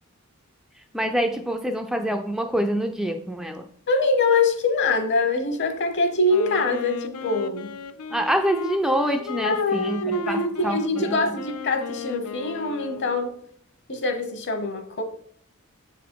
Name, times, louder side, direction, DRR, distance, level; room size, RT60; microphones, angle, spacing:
voice 1, 0.9-3.7 8.1-11.3, equal, ahead, 5 dB, 0.3 m, -26 dB
voice 2, 3.9-7.7 9.4-13.3 13.9-15.0, left 3 dB, 55° left, 7 dB, 1.1 m, -24 dB
Wind instrument woodwind instrument, 6.2-13.3, left 5 dB, 85° left, 0.5 m, -36 dB
7.2 x 4.0 x 4.6 m, 0.65 s
head